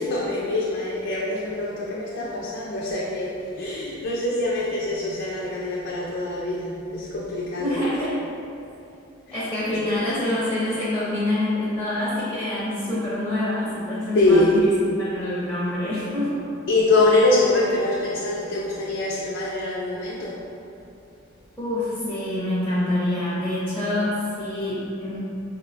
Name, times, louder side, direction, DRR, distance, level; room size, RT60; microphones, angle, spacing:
voice 1, 0.0-7.8 14.1-14.5 16.7-20.4, left 2 dB, 60° left, -5 dB, 0.4 m, -24 dB
voice 2, 7.6-8.2 9.3-14.7 15.0-16.5 21.6-25.2, left 1 dB, 5° left, -11 dB, 0.5 m, -26 dB
4.2 x 2.1 x 2.5 m, 2.7 s
head